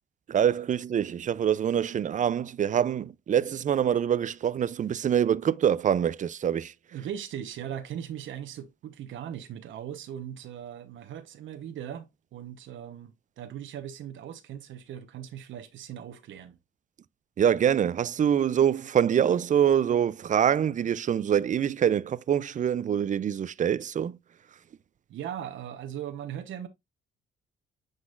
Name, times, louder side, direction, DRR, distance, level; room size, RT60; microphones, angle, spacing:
voice 1, 0.3-6.7 17.4-24.2, right 9 dB, 40° right, 0.4 m, -25 dB
voice 2, 6.9-16.6 25.1-26.7, right 10 dB, 75° right, 1.0 m, -39 dB
9.6 x 4.0 x 2.5 m
cardioid pair, 90°, 20 cm